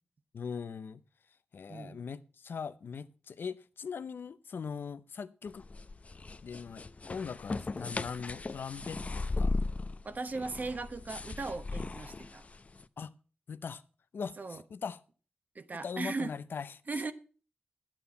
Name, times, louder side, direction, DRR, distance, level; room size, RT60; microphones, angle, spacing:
voice 1, 0.3-1.0 1.5-5.6 6.4-9.5 13.0-13.1 13.5-13.8 14.1-15.0 15.8-16.8, left 6 dB, 80° left, 0.6 m, -40 dB
sound 1, 5.5-12.8, left 3 dB, 40° left, 0.6 m, -37 dB
voice 2, 10.0-12.5 14.4-14.6 15.5-16.3 16.9-17.1, right 3 dB, 50° right, 1.1 m, -38 dB
11.5 x 8.9 x 5.5 m
cardioid pair, 70°, 4 cm